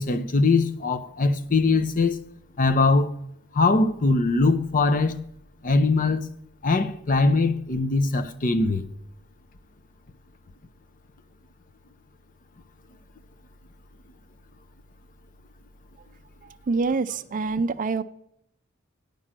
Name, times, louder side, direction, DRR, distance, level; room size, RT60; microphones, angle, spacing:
voice 1, 0.0-2.2 2.6-3.1 3.5-5.2 5.6-6.3 6.6-8.9, left 3 dB, 40° left, 0.6 m, -21 dB
voice 2, 16.7-18.0, right 4 dB, 40° right, 0.4 m, -25 dB
10.0 x 5.3 x 7.4 m
head